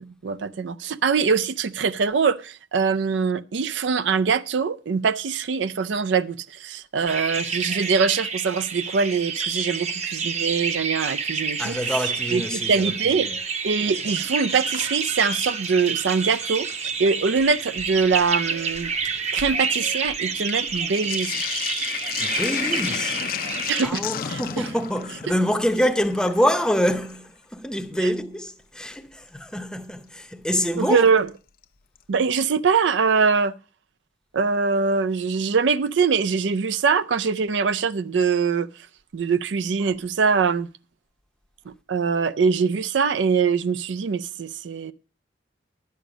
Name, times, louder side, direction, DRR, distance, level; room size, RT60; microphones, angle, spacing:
voice 1, 0.0-13.3 13.6-18.9 19.3-21.4 23.7-24.0 24.3-24.7 28.0-28.1 30.7-31.3 32.1-33.5 34.3-38.7 39.1-40.7 41.9-44.9, right 5 dB, 80° right, 0.4 m, -23 dB
sound 1, 7.1-23.9, right 5 dB, 35° right, 0.8 m, -29 dB
voice 2, 11.6-12.9 13.2-13.3 22.2-23.2 23.8-31.0, equal, 5° left, 0.6 m, -25 dB
Sink (filling or washing), 13.7-15.7 16.1-16.9 17.7-17.8 18.1-27.2 28.9-29.0 30.8-31.3 31.6-31.7 32.0-32.1, left 8 dB, 50° left, 0.5 m, -33 dB
11.5 x 8.4 x 5.0 m
head